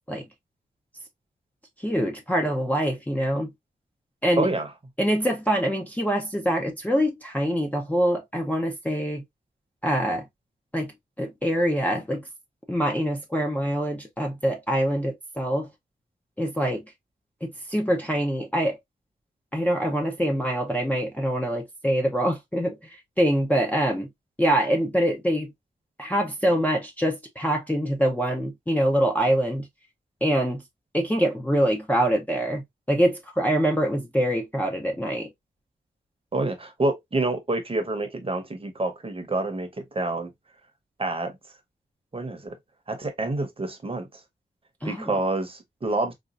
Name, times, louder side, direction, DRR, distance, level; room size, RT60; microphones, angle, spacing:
voice 1, 1.8-3.5 4.2-4.5 5.0-9.2 9.8-10.2 10.7-10.9 11.2-12.3 12.7-15.7 16.4-16.8 17.4-18.8 19.5-24.1 24.4-25.5 26.0-29.7 30.2-30.6 30.9-35.3 44.8-45.2, equal, 10° left, 0.6 m, -24 dB
voice 2, 4.4-4.7 36.3-40.3 41.0-41.3 42.1-42.6 42.9-44.1 44.8-46.1, right 2 dB, 30° right, 0.8 m, -27 dB
4.0 x 2.4 x 2.4 m
wide cardioid pair, 135°, 19 cm